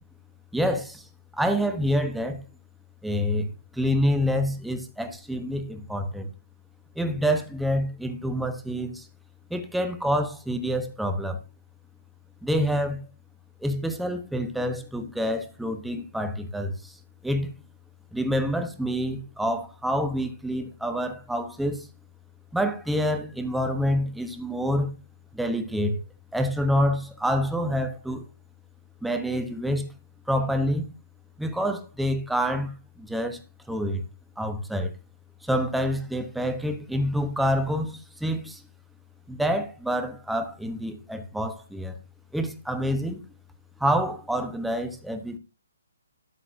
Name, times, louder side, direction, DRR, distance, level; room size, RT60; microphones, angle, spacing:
voice 1, 0.5-1.1 1.3-2.4 3.0-6.3 7.0-9.1 9.5-11.4 12.4-13.0 13.6-17.0 17.2-17.5 18.1-21.9 22.5-24.9 25.3-26.0 26.3-28.2 29.0-29.9 30.3-30.9 31.4-33.4 33.7-34.0 34.4-34.9 35.4-38.6 39.3-42.0 42.3-43.2 43.8-45.4, equal, ahead, 1.0 m, -27 dB
12.5 x 8.2 x 2.7 m
hypercardioid pair, 160°, 0 cm